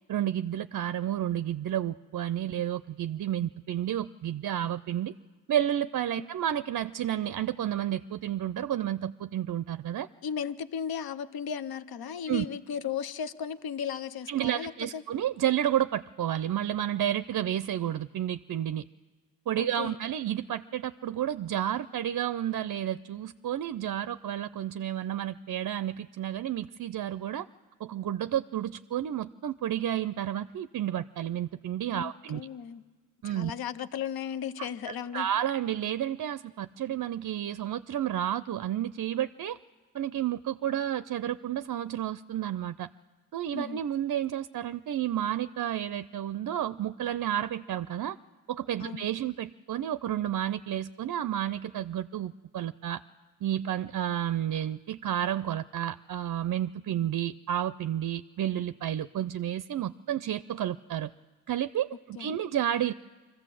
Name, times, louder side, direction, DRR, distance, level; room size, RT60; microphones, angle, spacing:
voice 1, 0.1-5.1 5.5-10.1 12.3-12.5 14.3-18.8 19.5-27.5 27.8-32.4 33.2-33.5 34.6-39.6 39.9-42.9 43.3-48.2 48.5-53.0 53.4-61.1 61.5-62.9, right 11 dB, 55° right, 14 dB, 0.5 m, -31 dB
voice 2, 10.2-15.0 19.6-20.0 31.9-32.8 33.2-35.3 43.5-43.8 48.8-49.1 62.2-62.4, left 7 dB, 65° left, 14 dB, 0.8 m, -36 dB
23.5 x 15.0 x 7.6 m, 1.4 s
cardioid pair, 55°, 40 cm